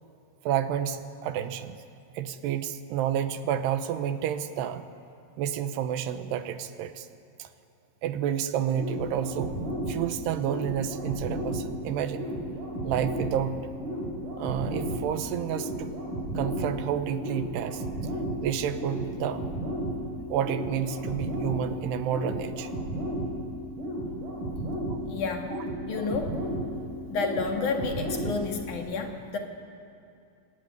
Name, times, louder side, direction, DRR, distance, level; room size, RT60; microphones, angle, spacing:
voice 1, 0.4-1.8 2.1-4.9 5.4-7.1 7.4-7.5 8.0-9.5 9.9-12.3 12.8-13.6 14.4-15.9 16.3-17.8 18.4-19.6 20.3-22.7 24.9-25.0 25.5-25.6, right 9 dB, 85° right, 10 dB, 3.1 m, -30 dB
sound 1, 8.7-28.7, equal, 50° right, 6.6 m, -34 dB
voice 2, 25.1-25.5 25.9-26.4 27.1-29.4, left 4 dB, 55° left, 3 dB, 3.0 m, -30 dB
26.5 x 20.0 x 9.4 m, 2.5 s
omnidirectional pair, 4.7 m